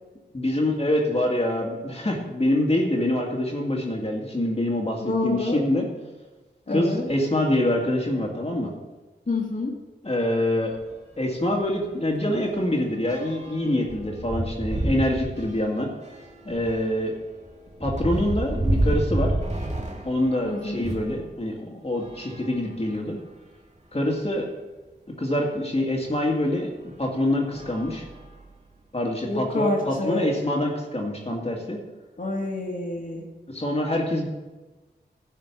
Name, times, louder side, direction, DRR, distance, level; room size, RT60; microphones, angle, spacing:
voice 1, 0.3-5.9 6.7-8.7 10.0-10.7 11.2-15.9 16.4-17.1 17.8-19.3 20.0-23.2 23.9-24.5 25.2-26.7 27.0-28.0 28.9-31.8 33.5-34.3, left 1 dB, 35° left, -1 dB, 2.1 m, -25 dB
voice 2, 5.0-5.6 6.7-7.0 9.3-9.7 20.4-20.8 29.3-30.3 32.2-33.3, left 2 dB, 50° left, -4 dB, 2.0 m, -27 dB
sound 1, 10.7-10.9 11.3-11.4 11.7-21.2 21.9-23.3 23.9-24.0 24.3-24.4 26.1-26.2 26.8-27.0 27.5-28.8, right 1 dB, 40° right, 2.1 m, -30 dB
12.0 x 5.0 x 8.4 m, 1.2 s
cardioid pair, 45°, 18 cm